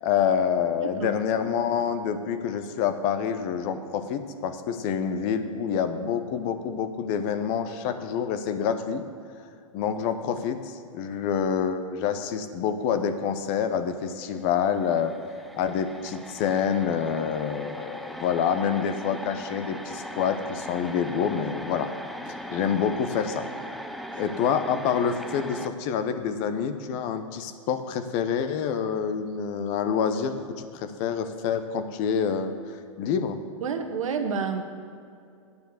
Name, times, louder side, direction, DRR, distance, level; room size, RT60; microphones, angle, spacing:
voice 1, 0.0-9.0 9.7-15.1 15.6-21.9 22.3-23.4 24.2-32.5 33.0-33.4, left 7 dB, 40° left, 9 dB, 0.8 m, -27 dB
voice 2, 0.8-1.1 24.1-24.2 33.6-34.6, right 6 dB, 70° right, 5 dB, 1.2 m, -29 dB
sound 1, 14.4-14.5 14.7-25.7, equal, ahead, 0.5 m, -39 dB
9.7 x 6.8 x 7.9 m, 2.5 s
hypercardioid pair, 115°, 17 cm